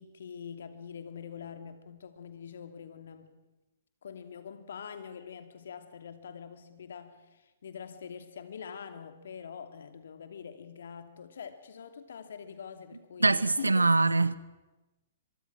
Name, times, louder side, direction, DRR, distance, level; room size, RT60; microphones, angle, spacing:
voice 1, 0.0-3.3 4.0-13.9, left 7 dB, 65° left, 2.7 m, -44 dB
voice 2, 13.2-14.3, right 3 dB, 85° right, 1.1 m, -23 dB
24.0 x 24.0 x 6.1 m
figure-of-eight pair, 120°, 0 cm